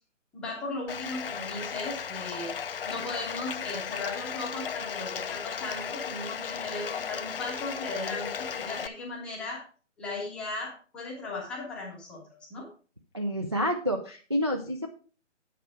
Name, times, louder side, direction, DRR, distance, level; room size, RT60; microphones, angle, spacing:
voice 1, 0.3-2.5 2.8-9.6 10.0-12.7, left 2 dB, 5° left, -4 dB, 0.8 m, -37 dB
Bathtub (filling or washing), 0.9-8.9, left 7 dB, 50° left, 0.5 m, -35 dB
voice 2, 13.1-14.9, equal, 25° right, 1 dB, 0.4 m, -29 dB
8.7 x 6.7 x 4.7 m, 0.37 s
hypercardioid pair, 155°, 38 cm